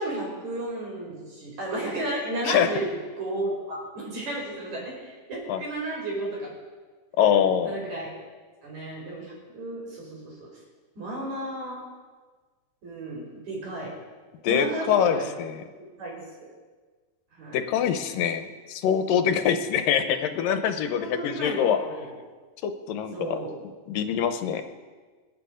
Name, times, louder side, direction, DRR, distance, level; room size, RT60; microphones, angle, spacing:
voice 1, 0.0-6.5 7.2-8.1 8.6-10.5 11.0-11.8 12.8-13.9 14.5-15.3 16.0-16.5 17.3-17.6 19.8-20.1 21.0-22.2 23.1-23.6, right 1 dB, 55° right, -3 dB, 6.3 m, -33 dB
voice 2, 7.2-7.7 14.4-15.6 17.5-21.8 22.6-23.4 23.9-24.6, left 8 dB, 80° left, 9 dB, 2.6 m, -24 dB
27.0 x 9.2 x 5.1 m, 1.4 s
omnidirectional pair, 3.9 m